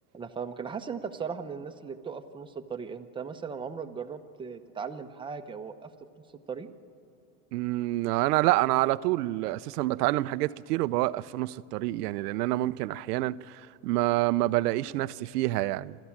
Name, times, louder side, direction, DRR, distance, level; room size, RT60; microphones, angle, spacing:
voice 1, 0.1-5.9 6.5-6.7, right 6 dB, 10° right, 0.8 m, -37 dB
voice 2, 7.5-16.0, right 17 dB, 85° right, 0.7 m, -27 dB
28.0 x 12.5 x 7.3 m
supercardioid pair, 140°, 46 cm